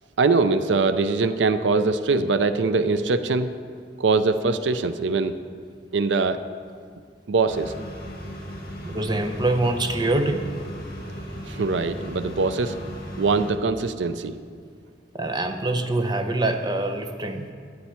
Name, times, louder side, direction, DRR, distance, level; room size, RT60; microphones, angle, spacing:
voice 1, 0.2-3.5 4.0-5.3 5.9-6.4 7.3-7.7 11.5-12.7 13.2-14.4, right 3 dB, 85° right, 11 dB, 0.5 m, -22 dB
sound 1, 7.5-13.5, equal, 55° left, 2.1 m, -37 dB
voice 2, 8.8-10.5 15.1-17.5, right 2 dB, 25° right, 6 dB, 0.6 m, -24 dB
13.0 x 10.0 x 4.4 m, 2.1 s
head